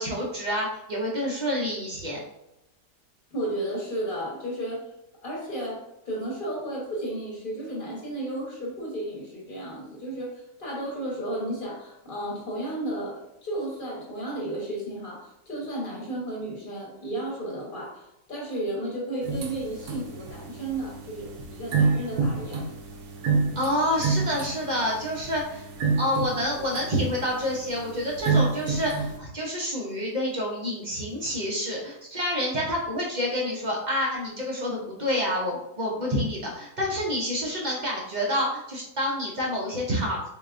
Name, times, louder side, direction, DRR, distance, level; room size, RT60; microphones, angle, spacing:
voice 1, 0.0-2.2 23.6-25.7 26.0-40.3, equal, 50° right, -3 dB, 0.5 m, -28 dB
voice 2, 3.3-4.9 5.2-22.6, right 1 dB, 35° left, -3 dB, 1.2 m, -33 dB
sound 1, 19.2-29.2, right 4 dB, 70° right, 1.1 m, -29 dB
3.7 x 3.7 x 2.5 m, 0.84 s
omnidirectional pair, 1.7 m